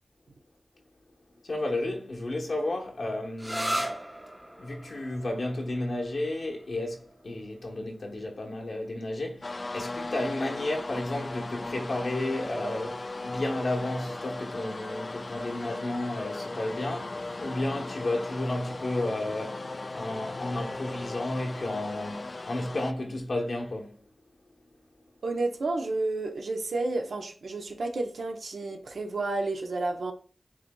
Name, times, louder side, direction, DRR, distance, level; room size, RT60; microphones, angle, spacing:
voice 1, 1.5-3.9 4.6-23.9, left 1 dB, 75° left, 1.0 m, -32 dB
sound 1, 3.4-10.8, equal, 5° right, 0.7 m, -39 dB
sound 2, 9.4-22.9, left 2 dB, 45° left, 0.3 m, -37 dB
voice 2, 25.2-30.1, right 2 dB, 85° right, 0.7 m, -31 dB
7.4 x 2.7 x 2.2 m
wide cardioid pair, 55°, 0 cm